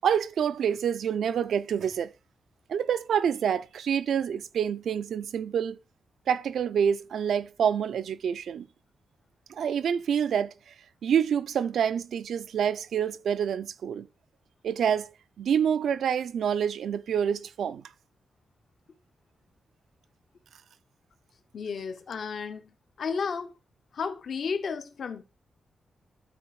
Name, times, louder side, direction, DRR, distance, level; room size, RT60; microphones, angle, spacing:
voice 1, 0.0-2.1 2.7-5.8 6.3-8.7 9.5-10.7 11.0-14.1 14.6-15.1 15.4-17.8, right 8 dB, 85° right, 0.6 m, -27 dB
voice 2, 21.5-23.5 23.9-25.2, left 5 dB, 60° left, 0.9 m, -33 dB
12.5 x 4.3 x 4.8 m
wide cardioid pair, 145°, 0 cm